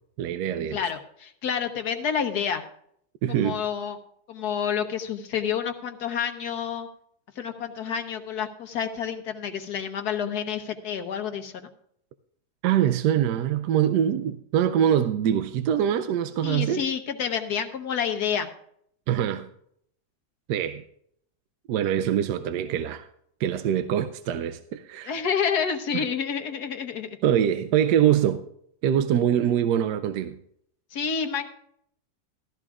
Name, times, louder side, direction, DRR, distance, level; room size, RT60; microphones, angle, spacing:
voice 1, 0.2-0.8 3.2-3.6 12.6-16.8 19.1-19.5 20.5-20.8 21.7-23.1 23.4-25.1 25.9-26.0 27.2-28.4 28.8-30.3, right 10 dB, 75° right, 1.1 m, -24 dB
voice 2, 0.7-2.6 3.3-4.0 4.3-6.9 7.4-11.7 16.4-18.5 25.0-27.1 30.9-31.5, left 7 dB, 65° left, 1.5 m, -29 dB
15.5 x 13.5 x 2.4 m
omnidirectional pair, 1.9 m